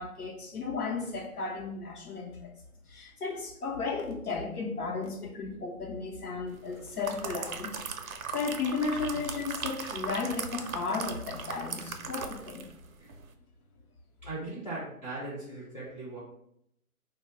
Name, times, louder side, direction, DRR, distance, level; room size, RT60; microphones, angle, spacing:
voice 1, 0.0-2.5 2.9-7.7 8.3-12.7, left 4 dB, 85° left, -1 dB, 0.7 m, -34 dB
sound 1, 6.7-12.8 13.1-13.3, right 5 dB, 70° right, 0.5 m, -38 dB
voice 2, 14.2-16.2, right 2 dB, 30° left, -6 dB, 0.4 m, -39 dB
2.8 x 2.1 x 3.1 m, 0.75 s
figure-of-eight pair, 155°, 44 cm